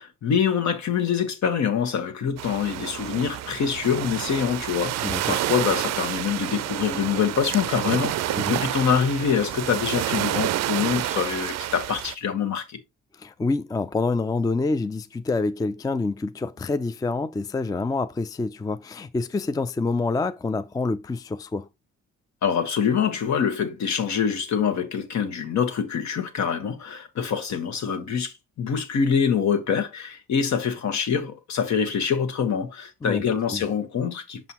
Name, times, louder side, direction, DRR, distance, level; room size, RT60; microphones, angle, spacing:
voice 1, 0.0-12.8 22.4-34.5, left 7 dB, 65° left, 1.4 m, -25 dB
sound 1, 2.4-12.1, right 13 dB, 60° right, 0.5 m, -29 dB
voice 2, 5.0-5.4 8.3-8.6 13.1-21.7 33.0-33.2 33.5-33.6, left 3 dB, 10° left, 0.4 m, -27 dB
6.0 x 5.5 x 2.9 m
cardioid pair, 90°, 30 cm